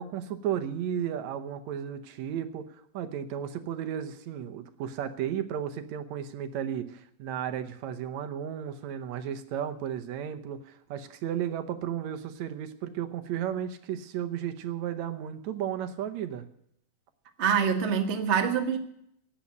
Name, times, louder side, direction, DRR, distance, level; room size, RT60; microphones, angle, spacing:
voice 1, 0.0-16.5, right 9 dB, 75° right, 2.2 m, -34 dB
voice 2, 17.4-18.8, right 7 dB, 55° right, 0.7 m, -25 dB
11.5 x 8.7 x 9.2 m
omnidirectional pair, 3.4 m